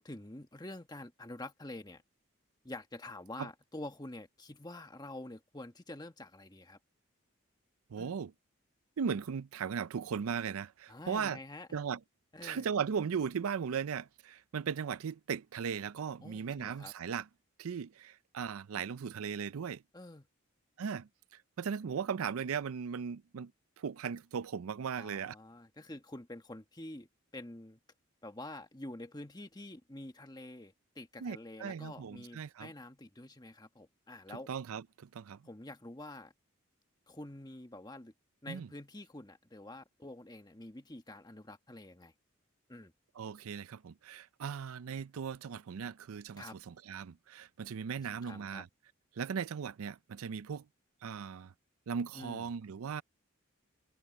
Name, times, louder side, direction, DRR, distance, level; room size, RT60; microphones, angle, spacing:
voice 1, 0.0-2.0 2.6-6.8 8.0-8.1 10.9-11.7 12.3-12.7 16.2-16.9 19.9-20.3 25.0-27.1 27.3-27.8 28.2-34.5 35.4-36.3 37.1-38.1 38.4-42.1 42.7-42.9 46.4-46.6 48.2-48.6 52.1-52.5, left 1 dB, 20° left, 1.3 m, -47 dB
voice 2, 7.9-8.3 9.0-11.4 11.7-12.0 12.4-17.3 17.6-19.8 20.8-21.1 21.6-23.5 23.8-25.4 31.2-32.7 34.5-35.4 38.5-38.7 43.2-48.7 49.2-50.7 51.0-51.5 51.9-53.0, right 6 dB, 85° right, 0.4 m, -37 dB
head